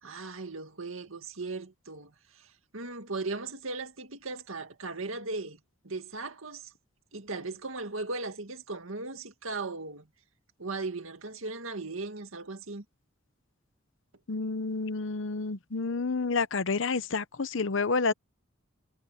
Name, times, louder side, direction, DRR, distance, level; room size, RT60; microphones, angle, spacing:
voice 1, 0.0-5.6 5.8-6.7 7.1-10.1 10.6-12.8, right 3 dB, 80° right, 2.1 m, -37 dB
voice 2, 14.3-18.1, left 4 dB, 70° left, 0.8 m, -29 dB
head